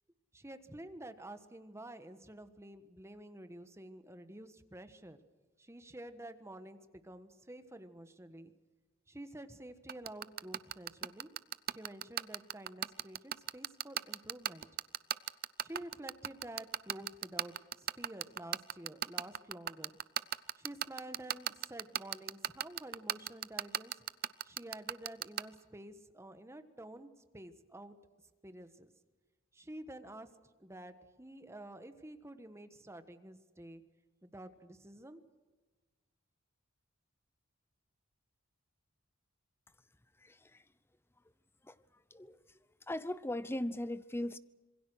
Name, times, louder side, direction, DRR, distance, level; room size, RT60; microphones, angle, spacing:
voice 1, 0.3-5.2 5.6-8.5 9.1-11.3 11.7-14.7 15.6-19.9 20.6-23.9 24.4-28.0 28.4-28.9 29.5-30.3 30.6-33.8 34.2-35.2, right 1 dB, 15° right, 10 dB, 1.4 m, -50 dB
sound 1, 9.9-25.4, right 11 dB, 45° right, 0.6 m, -34 dB
voice 2, 40.2-40.6 41.6-41.8 42.1-42.6 42.9-44.4, left 1 dB, 10° left, 16 dB, 0.7 m, -39 dB
26.5 x 22.0 x 6.3 m, 1.2 s
head